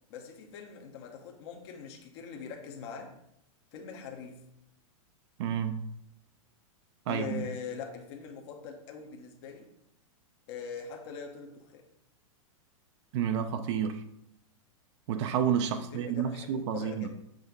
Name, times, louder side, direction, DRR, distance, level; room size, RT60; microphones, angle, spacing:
voice 1, 0.1-3.1 3.7-4.4 7.1-9.7 10.5-11.8 15.7-17.1, left 6 dB, 50° left, 2 dB, 1.0 m, -42 dB
voice 2, 5.4-5.8 7.1-7.5 13.1-14.0 15.1-17.1, right 8 dB, 55° right, 7 dB, 0.6 m, -30 dB
6.5 x 3.5 x 5.1 m, 0.79 s
hypercardioid pair, 140°, 18 cm